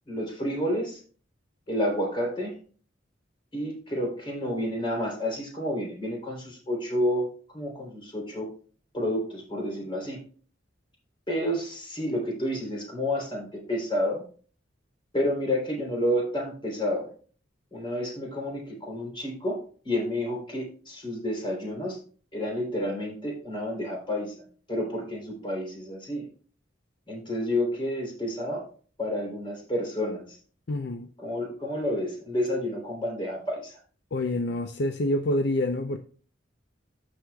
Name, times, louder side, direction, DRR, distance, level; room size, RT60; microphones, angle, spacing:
voice 1, 0.1-1.0 1.7-2.5 3.5-7.3 7.5-8.5 8.9-10.2 11.3-14.2 15.1-17.1 17.7-22.0 22.3-24.3 24.7-26.2 27.1-28.7 29.0-30.4 31.2-33.8, left 1 dB, 25° left, 3.3 m, -30 dB
voice 2, 30.7-31.1 34.1-36.0, left 1 dB, 60° left, 0.6 m, -27 dB
14.0 x 6.3 x 2.3 m
head